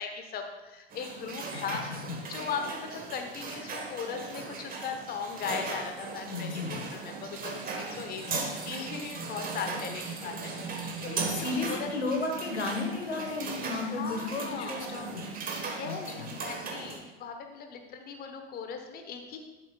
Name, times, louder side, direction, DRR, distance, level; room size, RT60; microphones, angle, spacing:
voice 1, 0.0-1.8 2.3-11.3 11.7-11.9 13.9-14.8 15.7-16.1 16.4-19.4, left 6 dB, 30° left, 5 dB, 1.1 m, -38 dB
sound 1, 0.9-17.0, right 4 dB, 25° right, 1.4 m, -38 dB
voice 2, 6.3-6.9 8.2-8.5 11.1-15.3 15.8-16.3, left 3 dB, 80° left, 3 dB, 1.4 m, -34 dB
12.0 x 7.4 x 2.4 m, 1.1 s
figure-of-eight pair, 80°, 33 cm